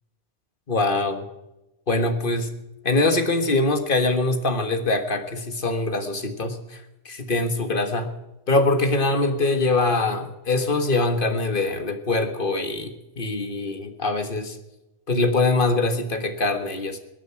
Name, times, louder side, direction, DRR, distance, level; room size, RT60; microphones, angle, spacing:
voice 1, 0.7-1.3 1.9-2.5 2.8-8.1 8.5-14.6 15.1-17.0, left 2 dB, 55° left, 8 dB, 1.7 m, -23 dB
21.5 x 9.3 x 5.8 m, 0.97 s
omnidirectional pair, 1.1 m